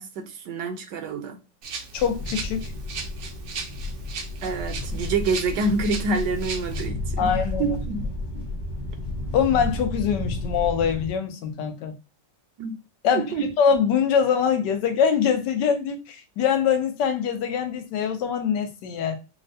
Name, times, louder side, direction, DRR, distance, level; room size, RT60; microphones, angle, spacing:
voice 1, 0.0-1.4 4.4-7.3 7.6-8.1 12.6-12.8 13.1-13.5, right 3 dB, 75° right, 1.3 m, -27 dB
Rattle (instrument), 1.6-6.9, right 5 dB, 60° right, 0.8 m, -37 dB
voice 2, 1.9-2.6 7.2-7.7 9.3-11.9 13.0-19.2, left 7 dB, 80° left, 1.3 m, -23 dB
sound 1, 2.0-11.1, left 2 dB, 30° left, 0.4 m, -32 dB
5.6 x 2.1 x 2.7 m
omnidirectional pair, 1.9 m